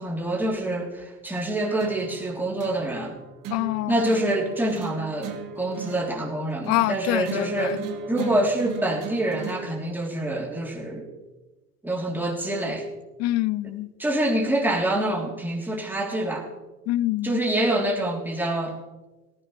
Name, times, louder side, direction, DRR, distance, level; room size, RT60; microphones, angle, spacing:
voice 1, 0.0-3.2 3.9-11.1 11.8-12.9 14.0-16.5 17.2-18.8, right 1 dB, 5° right, 3.5 m, -26 dB
sound 1, 1.8-9.8, right 6 dB, 45° right, 2.3 m, -38 dB
voice 2, 3.5-4.2 6.7-7.8 8.2-8.4 13.2-13.9 16.9-17.4, left 16 dB, 35° left, 0.5 m, -26 dB
18.0 x 15.5 x 3.3 m
hypercardioid pair, 85°, 46 cm